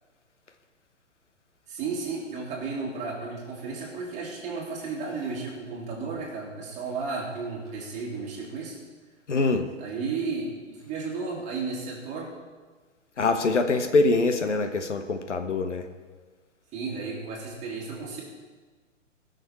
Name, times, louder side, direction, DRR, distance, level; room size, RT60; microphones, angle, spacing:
voice 1, 1.7-8.8 9.8-12.3 16.7-18.2, right 4 dB, 20° right, -4 dB, 2.8 m, -33 dB
voice 2, 9.3-9.7 13.2-15.8, left 3 dB, 70° left, 7 dB, 1.1 m, -24 dB
19.5 x 6.6 x 4.3 m, 1.4 s
figure-of-eight pair, 120°, 37 cm